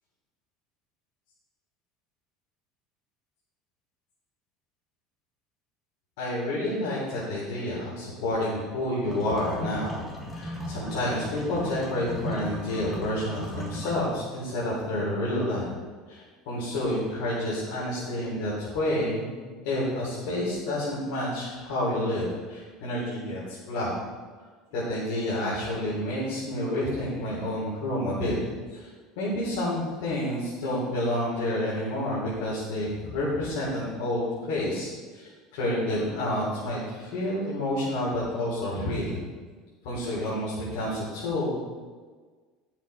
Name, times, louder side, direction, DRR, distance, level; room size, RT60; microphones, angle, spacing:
voice 1, 6.2-10.0 10.3-15.7 16.1-19.3 19.6-23.9 24.7-28.4 28.7-28.9 29.2-39.2 39.8-41.5, left 1 dB, 90° left, -7 dB, 3.6 m, -29 dB
sound 1, 9.0-14.0, equal, 10° left, 1.6 m, -37 dB
11.5 x 7.3 x 4.6 m, 1.5 s
cardioid pair, 165°, 0 cm